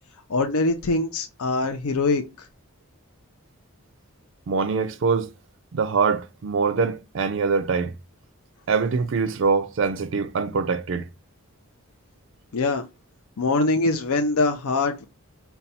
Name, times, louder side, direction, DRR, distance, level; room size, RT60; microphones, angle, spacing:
voice 1, 0.3-2.2 12.5-12.8 13.4-15.1, left 3 dB, 80° left, 0.5 m, -23 dB
voice 2, 4.5-5.3 5.7-7.9 8.7-11.1, right 5 dB, 55° right, 0.4 m, -23 dB
5.4 x 2.3 x 4.1 m
head